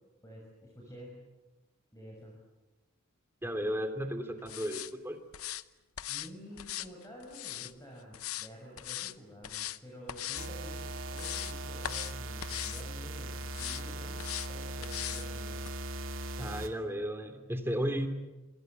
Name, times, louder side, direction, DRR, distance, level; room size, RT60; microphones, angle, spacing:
voice 1, 0.2-1.2 1.9-2.3 6.1-14.2 14.5-15.6, equal, 15° left, -3 dB, 6.6 m, -49 dB
voice 2, 3.4-5.2 16.4-18.1, equal, 10° right, 7 dB, 2.9 m, -34 dB
sound 1, 4.5-4.9 5.3-5.6 6.0-6.3 6.6-7.7 8.1-8.5 8.8-9.1 9.4-9.8 10.1-10.5 10.9-11.5 11.8-12.1 12.4-12.8 13.5-13.8 14.2-14.5 14.8-15.3 15.6-15.7, left 12 dB, 90° left, 0.9 m, -39 dB
sound 2, 10.4-16.7, right 2 dB, 65° right, 2.6 m, -39 dB
28.0 x 24.5 x 8.1 m, 1.1 s
head